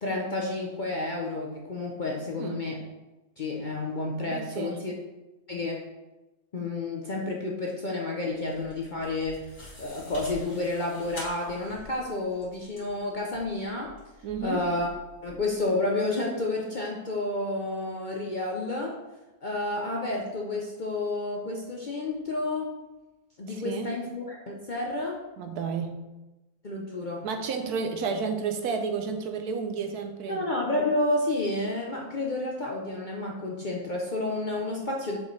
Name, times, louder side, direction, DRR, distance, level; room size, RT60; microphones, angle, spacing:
voice 1, 0.0-2.8 3.4-4.9 5.5-5.9 6.5-14.0 14.4-14.9 15.2-19.0 19.4-22.8 23.4-25.2 26.6-27.3 30.3-35.2, left 2 dB, 45° left, -1 dB, 0.6 m, -30 dB
voice 2, 4.3-4.8 14.2-14.7 23.5-23.9 25.4-25.9 27.2-30.5, right 5 dB, 75° right, 5 dB, 1.3 m, -31 dB
sound 1, 8.3-15.6, left 1 dB, 70° left, 2.9 m, -47 dB
6.7 x 5.4 x 3.2 m, 1.1 s
omnidirectional pair, 1.6 m